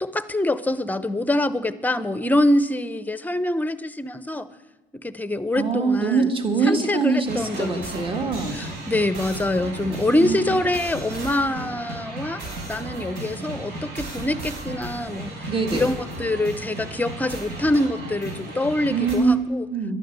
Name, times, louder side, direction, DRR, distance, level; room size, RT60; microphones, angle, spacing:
voice 1, 0.0-4.5 5.0-6.3 6.7-8.0 8.5-12.4 12.7-15.3 15.7-19.7, left 1 dB, 10° left, 14 dB, 0.7 m, -25 dB
voice 2, 5.5-8.6 10.2-10.4 15.5-15.9 18.9-20.0, right 4 dB, 30° right, 5 dB, 2.0 m, -23 dB
sound 1, 7.2-19.2, right 2 dB, 80° right, 5.0 m, -35 dB
12.0 x 11.0 x 8.1 m, 1.1 s
cardioid pair, 110°, 17 cm